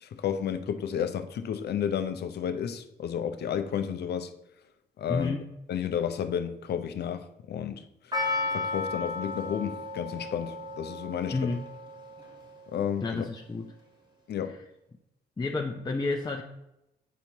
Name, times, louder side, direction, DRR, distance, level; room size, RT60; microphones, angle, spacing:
voice 1, 0.0-4.3 5.0-5.4 5.7-7.8 8.5-11.3 12.7-13.3 14.3-14.6, left 8 dB, 60° left, 0.6 m, -31 dB
voice 2, 5.1-5.5 11.3-11.6 13.0-13.7 14.5-14.6 15.4-16.4, left 3 dB, 20° left, 0.6 m, -30 dB
Percussion, 8.1-12.5 12.7-12.8, left 3 dB, 25° right, 1.5 m, -34 dB
8.2 x 4.4 x 2.9 m
hypercardioid pair, 45°, 19 cm